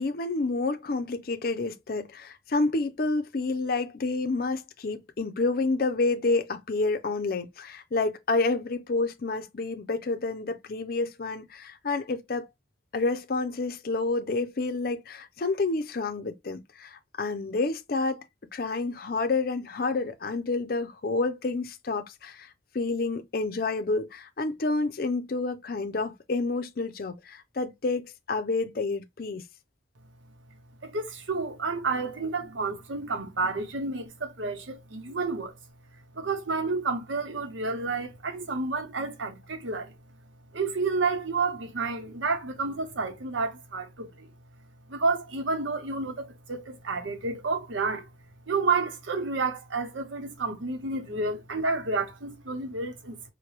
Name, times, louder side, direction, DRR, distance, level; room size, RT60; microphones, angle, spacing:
voice 1, 0.0-12.5 12.9-18.2 18.5-29.4, left 3 dB, 50° left, 0.5 m, -29 dB
voice 2, 30.8-35.6 36.1-39.9 40.5-44.3 44.9-48.1 48.5-53.2, right 3 dB, 85° right, 0.9 m, -30 dB
4.4 x 2.2 x 3.2 m
head